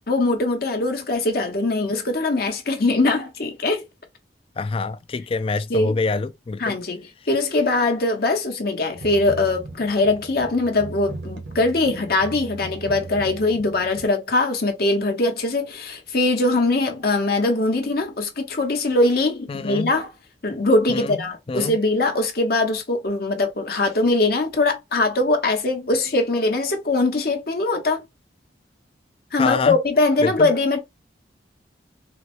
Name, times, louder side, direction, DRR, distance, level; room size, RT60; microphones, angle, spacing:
voice 1, 0.0-3.8 5.7-6.0 6.6-7.0 7.3-20.1 20.4-28.0 29.3-30.8, left 2 dB, 55° left, 0.9 m, -21 dB
voice 2, 4.6-6.8 19.5-19.9 20.9-21.2 21.5-21.7 29.4-29.8 30.2-30.5, left 4 dB, 30° left, 0.3 m, -25 dB
sound 1, 8.9-14.1, right 3 dB, 80° right, 1.0 m, -38 dB
4.0 x 2.1 x 3.0 m
head